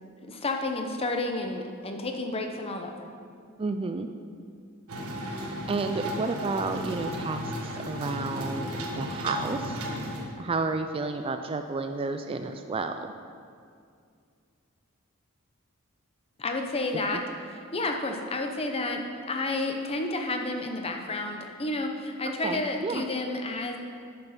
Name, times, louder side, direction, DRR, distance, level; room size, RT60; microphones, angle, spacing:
voice 1, 0.2-2.9 5.1-5.2 6.7-6.8 16.4-17.2 17.7-23.8, left 2 dB, 25° left, 3 dB, 0.8 m, -31 dB
voice 2, 3.6-4.1 5.7-9.8 10.4-12.9 17.1-17.2 22.4-23.0, right 3 dB, 25° right, 7 dB, 0.3 m, -31 dB
sound 1, 4.9-10.3, equal, 75° right, 1.4 m, -34 dB
8.7 x 6.6 x 5.8 m, 2.3 s
head